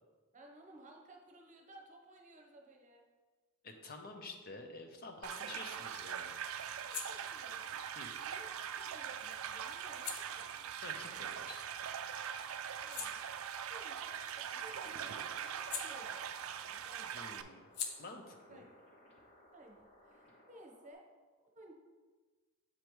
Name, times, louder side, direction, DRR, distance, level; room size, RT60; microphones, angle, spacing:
voice 1, 0.3-3.1 5.2-5.8 6.8-7.7 8.3-10.7 12.8-17.1 18.5-18.6 19.5-21.0 21.5-21.7, right 1 dB, 35° right, 2 dB, 0.9 m, -57 dB
voice 2, 3.6-6.3 8.0-8.1 10.8-11.7 17.1-17.7 18.0-18.6, left 3 dB, 45° left, 4 dB, 0.8 m, -49 dB
sound 1, 5.2-17.4, right 8 dB, 70° right, 0.4 m, -42 dB
sound 2, 6.7-12.0 12.4-16.6 16.9-20.3, left 6 dB, 75° left, 0.7 m, -50 dB
sound 3, 13.9-20.9, left 1 dB, 30° left, 1.2 m, -63 dB
7.4 x 5.0 x 3.1 m, 1.4 s
head